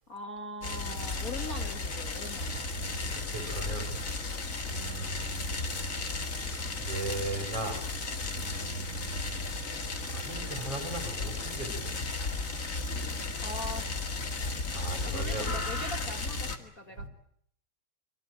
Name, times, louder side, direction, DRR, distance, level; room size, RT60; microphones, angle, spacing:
voice 1, 0.1-2.6 13.4-13.9 15.0-17.1, left 2 dB, 75° left, 4 dB, 0.8 m, -41 dB
sound 1, 0.6-16.6, left 3 dB, 35° left, 1.4 m, -34 dB
voice 2, 2.7-4.0 4.6-5.9 6.2-7.8 8.2-12.1 13.4-13.6 14.7-15.5 17.0-17.1, right 3 dB, 40° right, 9 dB, 4.5 m, -39 dB
24.5 x 23.5 x 8.9 m, 0.68 s
omnidirectional pair, 4.5 m